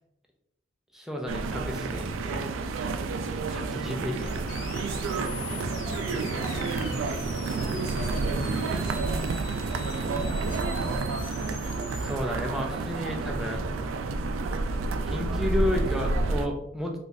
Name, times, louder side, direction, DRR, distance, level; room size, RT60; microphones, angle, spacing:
voice 1, 0.9-2.4 3.5-4.2 12.0-13.6 15.1-16.9, left 1 dB, ahead, 1 dB, 0.4 m, -32 dB
sound 1, 1.3-16.5, right 3 dB, 90° right, 0.3 m, -30 dB
sound 2, 4.1-12.1, left 5 dB, 75° left, 0.5 m, -44 dB
voice 2, 5.5-9.1 9.5-11.4, right 1 dB, 25° right, -9 dB, 1.5 m, -41 dB
3.9 x 2.4 x 2.5 m, 0.84 s
head